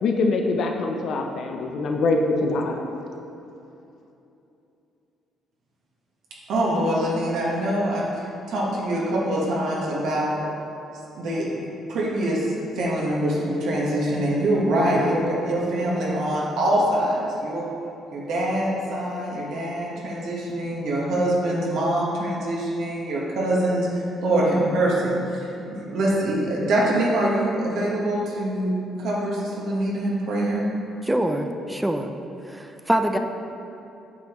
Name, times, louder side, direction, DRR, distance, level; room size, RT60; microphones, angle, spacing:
voice 1, 0.0-2.8, left 3 dB, 60° left, 2 dB, 0.6 m, -24 dB
voice 2, 6.5-8.0 8.5-10.4 11.1-11.5 11.9-12.5 12.7-17.7 18.1-23.9 24.2-30.6, right 1 dB, 70° right, -4 dB, 1.2 m, -24 dB
voice 3, 31.0-32.1 32.5-33.2, right 1 dB, 5° right, 5 dB, 0.4 m, -24 dB
8.5 x 5.2 x 3.0 m, 2.8 s
cardioid pair, 120°, 0 cm